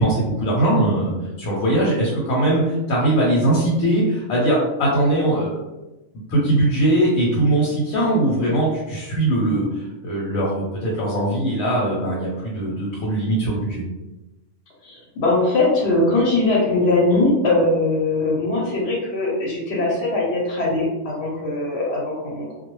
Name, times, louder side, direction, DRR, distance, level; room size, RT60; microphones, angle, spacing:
voice 1, 0.0-5.6 6.3-13.8, right 1 dB, 85° left, -4 dB, 1.1 m, -20 dB
voice 2, 14.8-22.5, left 2 dB, 60° left, -4 dB, 0.9 m, -21 dB
2.3 x 2.1 x 3.0 m, 1.0 s
omnidirectional pair, 1.4 m